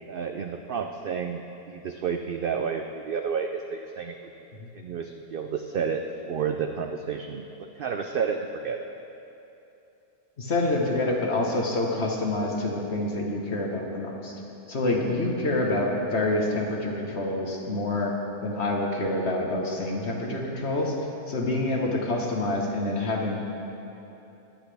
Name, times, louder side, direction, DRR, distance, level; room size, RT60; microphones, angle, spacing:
voice 1, 0.1-4.2 4.7-6.0 6.3-8.9, right 6 dB, 80° right, 5 dB, 0.5 m, -31 dB
voice 2, 10.4-14.4 14.7-18.1 18.4-21.0 21.3-23.4, left 2 dB, 50° left, -1 dB, 1.5 m, -27 dB
21.0 x 8.1 x 3.4 m, 2.9 s
omnidirectional pair, 1.5 m